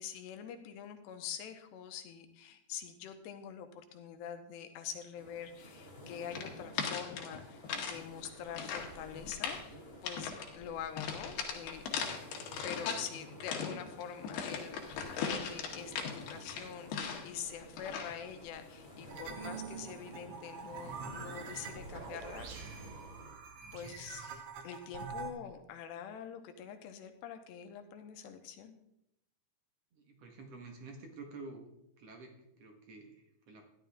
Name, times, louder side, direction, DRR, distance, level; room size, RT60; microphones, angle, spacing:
voice 1, 0.0-12.0 12.6-22.8 23.7-28.8, left 8 dB, 90° left, 7 dB, 3.2 m, -45 dB
sound 1, 5.1-23.4, left 1 dB, 25° left, 2.2 m, -53 dB
sound 2, 6.3-8.0 8.3-8.9 9.3-9.7 10.0-10.5 11.0-13.1 13.4-17.4 17.8-18.2, left 6 dB, 75° left, 3.3 m, -38 dB
sound 3, 19.1-25.3, right 5 dB, 75° right, 1.5 m, -45 dB
voice 2, 30.0-31.7 32.0-33.6, right 3 dB, 60° right, 3 dB, 1.7 m, -50 dB
13.5 x 11.0 x 3.5 m, 0.80 s
omnidirectional pair, 4.8 m